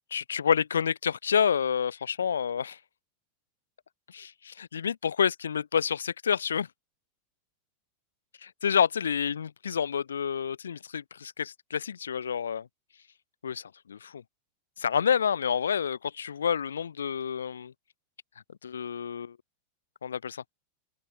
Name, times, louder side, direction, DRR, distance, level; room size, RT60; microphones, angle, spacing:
voice 1, 0.1-2.8 4.1-6.7 8.4-12.7 13.4-14.2 14.8-17.7 18.6-19.4 20.0-20.4, left 7 dB, 70° left, 3.0 m, -29 dB
figure-of-eight pair, 90°, 0 cm